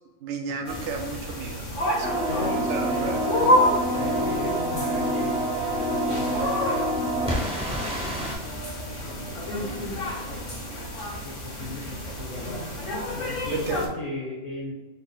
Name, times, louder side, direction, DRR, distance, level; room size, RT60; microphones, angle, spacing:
voice 1, 0.2-2.2 2.7-3.2 13.5-13.9, right 4 dB, 75° right, 4 dB, 0.9 m, -32 dB
sound 1, 0.6-13.9, left 1 dB, 75° left, 1.6 m, -29 dB
sound 2, 2.0-8.3, right 1 dB, 5° right, 0.6 m, -27 dB
voice 2, 2.3-3.2 3.9-8.3 9.0-10.4 11.0-12.6 13.1-14.7, left 1 dB, 40° left, -5 dB, 0.7 m, -38 dB
4.0 x 2.2 x 3.8 m, 1.2 s
omnidirectional pair, 1.3 m